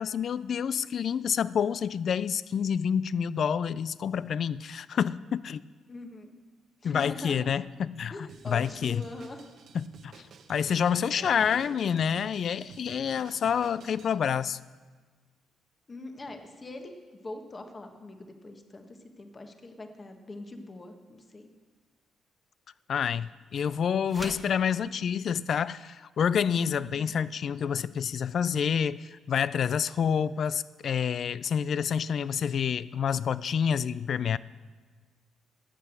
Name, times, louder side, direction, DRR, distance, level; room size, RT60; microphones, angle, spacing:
voice 1, 0.0-5.6 6.8-8.1 8.5-9.1 9.7-14.6 22.9-34.4, left 7 dB, 60° left, 18 dB, 0.3 m, -28 dB
voice 2, 5.9-6.4 6.8-7.6 8.1-9.4 11.1-11.8 15.9-21.5 26.9-27.2, left 2 dB, 30° left, 5 dB, 1.4 m, -43 dB
Drum kit, 8.3-14.2, right 6 dB, 65° right, 1.0 m, -51 dB
sound 1, 24.0-24.6, right 1 dB, 15° right, 1.2 m, -40 dB
12.5 x 8.2 x 7.6 m, 1.4 s
cardioid pair, 90°, 0 cm